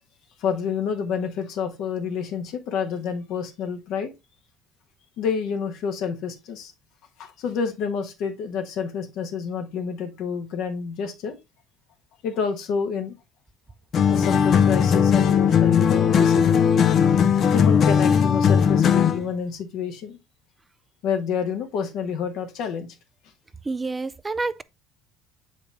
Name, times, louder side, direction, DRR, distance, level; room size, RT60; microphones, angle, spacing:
voice 1, 0.4-4.1 5.2-6.7 7.2-11.4 12.2-13.1 14.0-16.9 17.5-20.2 21.0-22.9, left 6 dB, 65° left, 1.3 m, -28 dB
sound 1, 13.9-19.3, left 7 dB, 50° left, 0.7 m, -18 dB
voice 2, 23.7-24.6, right 3 dB, 20° right, 0.4 m, -28 dB
7.0 x 5.1 x 3.3 m
hypercardioid pair, 75°, 0 cm